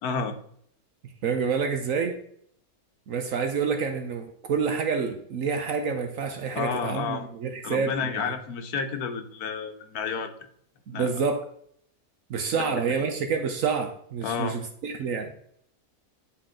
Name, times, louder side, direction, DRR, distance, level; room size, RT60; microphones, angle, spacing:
voice 1, 0.0-0.3 6.5-7.3 7.6-10.3 10.9-11.2 12.5-13.0 14.2-14.6, left 5 dB, 90° left, 7 dB, 1.4 m, -31 dB
voice 2, 1.2-2.2 3.1-8.3 10.9-11.4 12.3-15.3, right 5 dB, 65° right, 6 dB, 1.1 m, -28 dB
9.8 x 4.2 x 3.7 m, 0.66 s
omnidirectional pair, 1.6 m